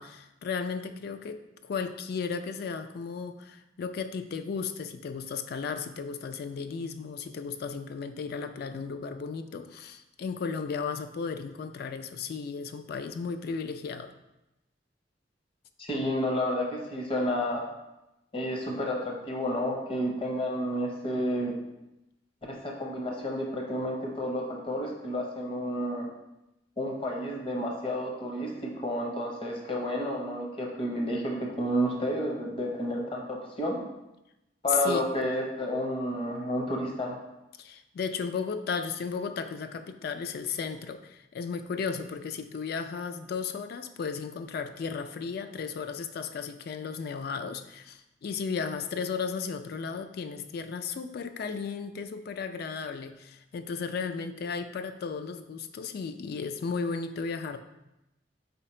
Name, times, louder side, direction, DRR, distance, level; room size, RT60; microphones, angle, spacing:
voice 1, 0.0-14.1 34.7-35.1 37.6-57.6, left 5 dB, 60° left, 9 dB, 0.3 m, -34 dB
voice 2, 15.8-17.7 18.3-21.6 22.5-26.1 26.8-33.8 34.6-37.2, equal, 30° left, 0 dB, 0.8 m, -31 dB
4.2 x 2.8 x 4.2 m, 0.94 s
head